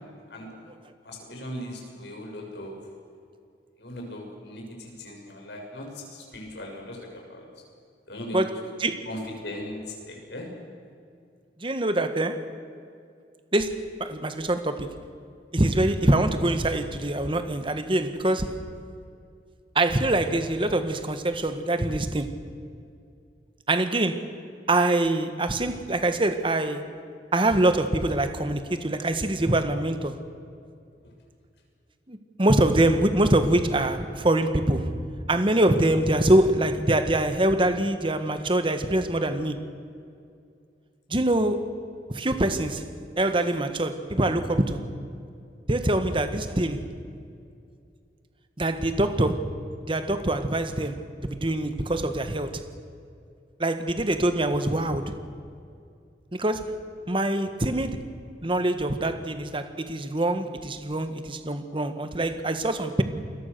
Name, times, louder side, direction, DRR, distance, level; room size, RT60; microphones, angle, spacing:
voice 1, 0.3-0.7 1.0-2.8 3.8-7.5 8.1-8.5 9.0-10.5, left 1 dB, 75° left, 6.7 m, -38 dB
voice 2, 11.6-12.5 13.5-14.9 15.5-18.6 19.7-22.4 23.7-24.3 24.7-26.9 27.3-30.2 32.1-35.0 35.3-39.7 41.1-41.7 42.1-42.9 43.2-44.8 45.7-46.9 48.6-49.5 49.8-52.6 53.6-55.2 56.3-56.8 57.1-58.0 58.4-63.0, right 1 dB, 30° right, 1.5 m, -24 dB
28.5 x 22.0 x 6.8 m
head